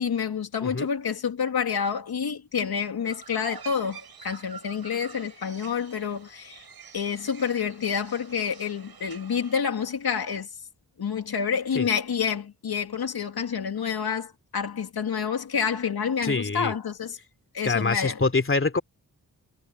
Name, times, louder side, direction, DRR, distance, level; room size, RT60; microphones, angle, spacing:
voice 1, 0.0-6.7 6.9-10.5 11.0-17.2 17.5-18.2, left 7 dB, 80° left, 2.6 m, -28 dB
sound 1, 3.1-9.6, right 6 dB, 80° right, 8.0 m, -47 dB
voice 2, 16.2-16.7 17.6-18.8, left 3 dB, 35° left, 2.9 m, -25 dB
wide cardioid pair, 85°, 37 cm